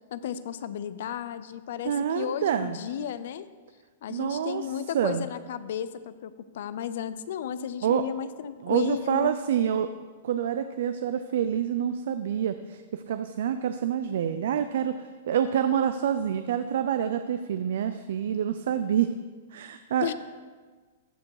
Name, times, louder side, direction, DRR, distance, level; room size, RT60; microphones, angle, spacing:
voice 1, 0.1-3.5 4.0-9.3 20.0-20.1, left 8 dB, 70° left, 14 dB, 0.5 m, -33 dB
voice 2, 1.8-2.8 4.1-4.7 4.9-5.2 7.8-8.1 8.6-9.9 10.2-19.1 19.5-20.1, right 9 dB, 70° right, 10 dB, 0.4 m, -27 dB
14.0 x 5.1 x 4.8 m, 1.4 s
hypercardioid pair, 140°, 0 cm